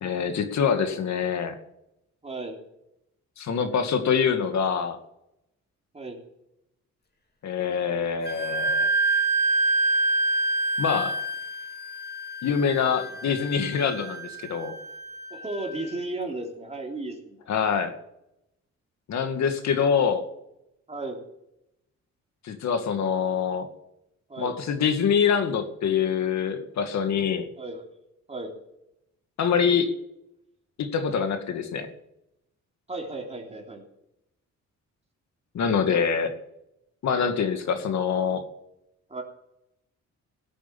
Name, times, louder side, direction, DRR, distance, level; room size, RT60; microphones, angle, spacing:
voice 1, 0.0-1.6 3.4-5.0 7.4-8.9 10.8-11.2 12.4-14.7 17.5-17.9 19.1-20.3 22.4-23.7 24.4-27.5 29.4-29.9 30.8-31.9 35.5-36.3 37.0-38.5, left 6 dB, 70° left, 7 dB, 2.2 m, -25 dB
voice 2, 2.2-2.6 5.9-6.2 15.3-17.4 20.9-21.2 24.3-24.5 27.6-27.8 28.3-28.5 32.9-33.8 39.1-39.2, right 2 dB, 20° right, 0 dB, 3.5 m, -34 dB
Wind instrument woodwind instrument, 8.3-15.7, right 2 dB, 35° left, 2.7 m, -27 dB
17.5 x 8.6 x 7.2 m, 0.84 s
cardioid pair, 110°, 29 cm